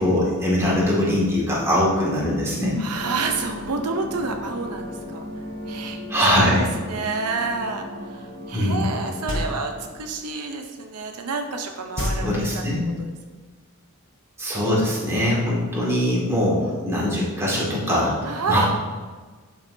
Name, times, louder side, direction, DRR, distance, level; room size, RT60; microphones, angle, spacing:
voice 1, 0.0-2.8 6.1-6.7 8.5-8.8 12.0-12.9 14.4-18.2 18.5-18.7, left 1 dB, 10° right, -7 dB, 2.2 m, -22 dB
voice 2, 2.8-5.2 5.7-6.0 6.4-12.3 12.5-12.6 13.0-13.1 16.6-16.8 18.2-18.6, right 4 dB, 85° right, 4 dB, 0.7 m, -29 dB
sound 1, 2.9-10.3, left 1 dB, 60° right, 2.3 m, -36 dB
sound 2, 9.3-9.9 12.0-13.0, left 1 dB, 60° left, 1.0 m, -29 dB
10.5 x 5.9 x 2.7 m, 1.4 s
head